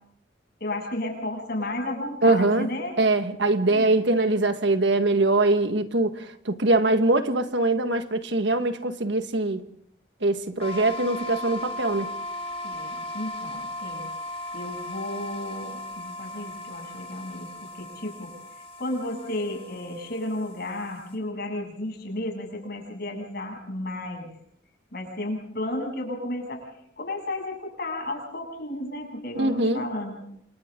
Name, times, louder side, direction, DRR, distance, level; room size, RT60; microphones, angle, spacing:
voice 1, 0.6-2.9 3.7-3.9 12.6-14.1 14.5-18.3 18.8-24.3 24.9-26.7 27.0-30.1, left 1 dB, 60° left, 2 dB, 8.0 m, -33 dB
voice 2, 2.2-2.7 3.0-9.7 10.2-12.1 29.4-29.8, right 2 dB, 70° right, 8 dB, 1.7 m, -22 dB
sound 1, 10.6-21.1, left 1 dB, 35° left, 5.5 m, -37 dB
28.5 x 28.0 x 3.8 m, 0.68 s
head